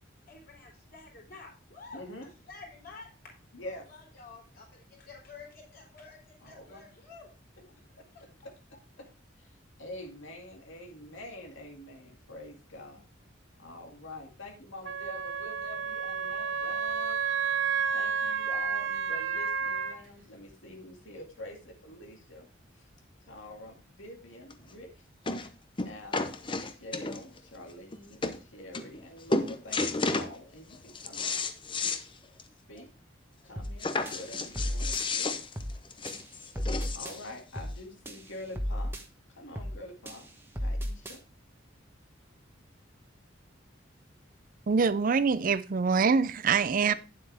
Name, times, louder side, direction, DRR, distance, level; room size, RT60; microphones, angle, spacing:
voice 1, 0.3-2.0 2.5-3.3 3.9-7.3 8.1-8.5, left 4 dB, 50° left, 3.9 m, -50 dB
voice 2, 1.9-2.3 3.5-3.9 6.4-6.9 8.0-8.1 8.4-9.1 9.4-13.0 13.6-17.2 17.9-22.5 22.8-22.9 23.2-24.9 25.8-31.4 32.7-32.9 33.4-35.4 36.9-38.9 39.3-40.2 40.6-41.2 46.8-47.0, left 1 dB, 85° left, 2.3 m, -46 dB
Wind instrument woodwind instrument, 14.8-20.0, right 6 dB, 80° right, 0.8 m, -31 dB
sound 1, 24.5-24.6 25.3-25.5 25.8-27.4 27.9-28.0 28.2-28.4 28.7-29.1 29.3-30.3 30.7-32.0 32.4-32.5 32.8-32.9 33.8-37.3 38.1-38.2, left 3 dB, 25° left, 0.7 m, -32 dB
sound 2, 33.6-33.8 34.1-35.0 35.6-35.8 36.1-37.2 37.6-37.8 38.1-39.0 39.6-39.8 40.1-41.2, equal, 10° right, 1.1 m, -34 dB
voice 3, 44.7-46.9, right 5 dB, 45° right, 0.4 m, -24 dB
9.4 x 7.7 x 3.4 m
head